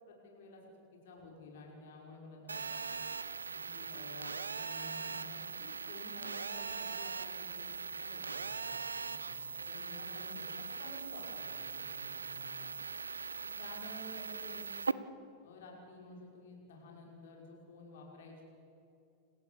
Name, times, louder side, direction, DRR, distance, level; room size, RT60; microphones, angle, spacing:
voice 1, 0.1-0.7 1.0-3.0 3.4-7.5 8.0-12.7 13.4-14.9 15.4-18.4, left 2 dB, 55° left, -1 dB, 5.7 m, -52 dB
Telephone, 2.5-14.9, right 5 dB, 75° right, 0.6 m, -40 dB
29.0 x 15.0 x 7.2 m, 2.7 s
figure-of-eight pair, 90°, 0 cm